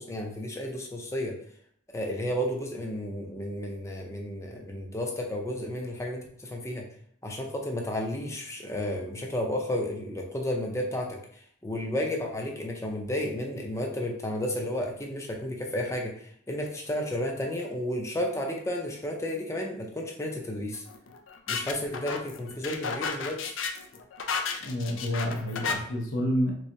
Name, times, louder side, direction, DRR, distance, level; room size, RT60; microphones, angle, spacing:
voice 1, 0.0-1.4 1.9-6.9 7.2-11.2 11.6-20.8 21.5-23.5, left 1 dB, 15° left, 1 dB, 0.5 m, -32 dB
sound 1, 20.7-25.7, left 5 dB, 70° left, 0.4 m, -33 dB
voice 2, 24.6-26.5, equal, 85° left, 0 dB, 0.8 m, -29 dB
3.4 x 3.1 x 2.7 m, 0.64 s
head